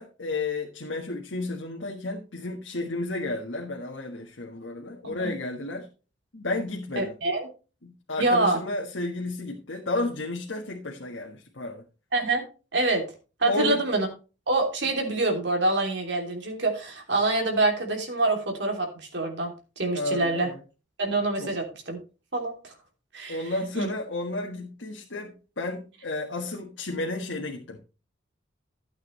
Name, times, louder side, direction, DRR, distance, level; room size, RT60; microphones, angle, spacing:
voice 1, 0.0-5.9 6.3-7.1 7.8-11.8 13.5-13.8 19.9-20.6 21.4-21.5 23.3-27.8, left 2 dB, 75° left, -1 dB, 1.6 m, -32 dB
voice 2, 7.0-7.5 8.2-8.6 12.1-12.4 12.7-13.0 13.4-14.1 14.5-18.9 19.1-20.5 21.0-22.0 22.3-22.7 23.1-23.4 23.7-23.9, right 2 dB, 65° right, 2 dB, 3.1 m, -26 dB
13.0 x 8.4 x 3.2 m, 0.32 s
head